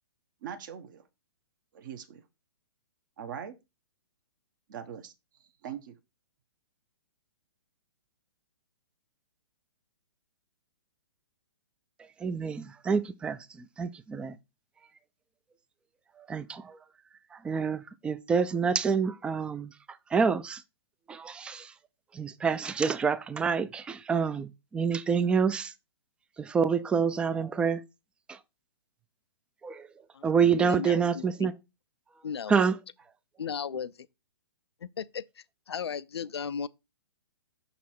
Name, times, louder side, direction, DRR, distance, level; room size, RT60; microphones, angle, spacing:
voice 1, 0.4-1.0 1.7-2.2 3.2-3.5 4.7-5.1 5.4-6.0, right 8 dB, 50° right, 1.0 m, -41 dB
voice 2, 12.2-14.4 16.3-16.8 17.4-19.7 20.1-20.6 21.1-21.7 22.1-25.7 26.4-27.8 28.3-28.4 29.6-29.8 30.2-31.5 32.5-32.8, right 6 dB, 5° right, 0.3 m, -27 dB
voice 3, 30.5-31.5 32.2-32.5 33.4-33.9 34.8-35.2 35.7-36.7, left 7 dB, 75° left, 0.4 m, -35 dB
6.3 x 4.1 x 4.2 m
figure-of-eight pair, 120°, 14 cm